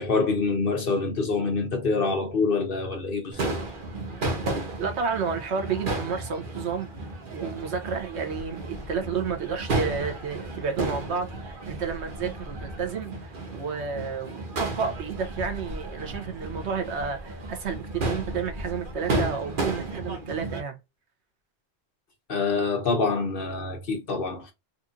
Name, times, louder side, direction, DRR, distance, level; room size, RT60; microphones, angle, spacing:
voice 1, 0.0-3.5 22.3-24.5, left 4 dB, 55° left, 1.3 m, -26 dB
Crowd / Fireworks, 3.3-20.6, right 2 dB, 55° right, 1.0 m, -33 dB
voice 2, 4.8-6.9 7.3-20.8, right 6 dB, 80° right, 1.2 m, -31 dB
4.2 x 2.5 x 2.5 m
omnidirectional pair, 1.1 m